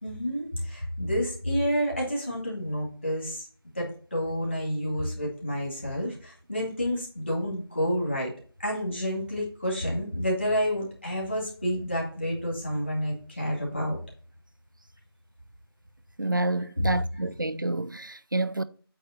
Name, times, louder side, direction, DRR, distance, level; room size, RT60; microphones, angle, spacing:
voice 1, 0.0-3.5 3.7-8.3 8.6-14.0, equal, 25° left, 2.2 m, -29 dB
voice 2, 16.2-18.6, right 2 dB, 50° right, 0.5 m, -28 dB
8.4 x 3.3 x 5.7 m
figure-of-eight pair, 180°, 13 cm